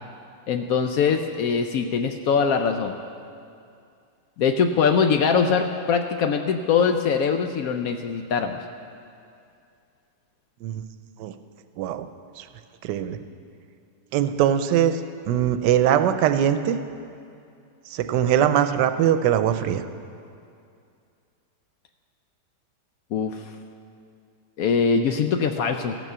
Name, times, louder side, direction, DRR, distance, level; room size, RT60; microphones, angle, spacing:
voice 1, 0.5-2.9 4.4-8.6 23.1-23.4 24.6-26.0, left 6 dB, 70° left, 6 dB, 0.9 m, -22 dB
voice 2, 12.8-13.2 14.1-15.0 15.3-16.8 17.9-19.8, right 10 dB, 85° right, 9 dB, 1.2 m, -21 dB
15.5 x 6.1 x 6.7 m, 2.4 s
omnidirectional pair, 1.8 m